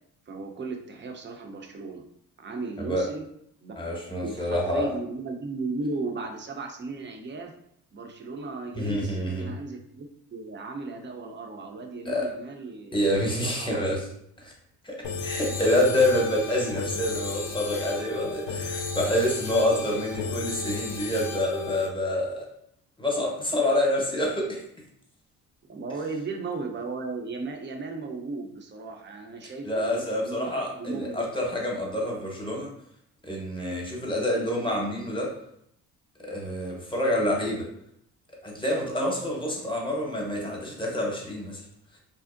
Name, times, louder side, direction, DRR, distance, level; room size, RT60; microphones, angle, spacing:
voice 1, 0.3-2.0 2.4-3.3 3.6-3.7 4.1-7.5 7.9-12.9 13.3-13.8 25.7-31.3, right 3 dB, 30° right, 3 dB, 0.5 m, -36 dB
voice 2, 3.8-4.9 8.7-9.6 12.0-12.3 12.9-14.1 14.4-14.5 14.8-22.5 23.0-24.6 29.6-32.7 33.2-35.3 36.2-37.7 38.4-41.6, left 1 dB, 15° left, -1 dB, 0.8 m, -27 dB
sound 1, 15.0-21.9, left 4 dB, 70° left, 0.5 m, -34 dB
2.5 x 2.0 x 2.4 m, 0.72 s
supercardioid pair, 60°, 37 cm